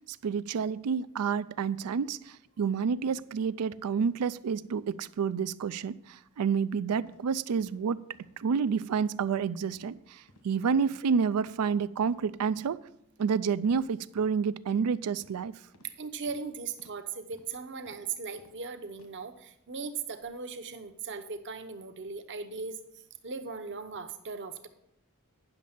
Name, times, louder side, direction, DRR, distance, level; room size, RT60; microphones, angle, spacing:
voice 1, 0.2-8.0 8.4-12.8 13.2-15.5, right 6 dB, 90° right, 17 dB, 0.4 m, -29 dB
sound 1, 7.1-7.2 7.6-7.8 8.1-8.3 8.7-8.8 9.2-9.4 9.7-9.9 10.3-10.5 10.8-11.0 11.4-11.6 12.0-12.2 12.5-12.7 13.2-13.3 13.6-13.8 14.2-14.3 14.7-14.9 15.2-15.4 15.7-15.9 16.3-16.4 16.8-17.0 17.3-17.5 17.8-18.0 18.4-18.6 18.9-19.1, left 1 dB, 80° left, 1.5 m, -58 dB
voice 2, 15.8-22.8 23.2-24.7, right 5 dB, 55° right, 8 dB, 0.8 m, -38 dB
10.0 x 6.2 x 5.8 m, 0.79 s
head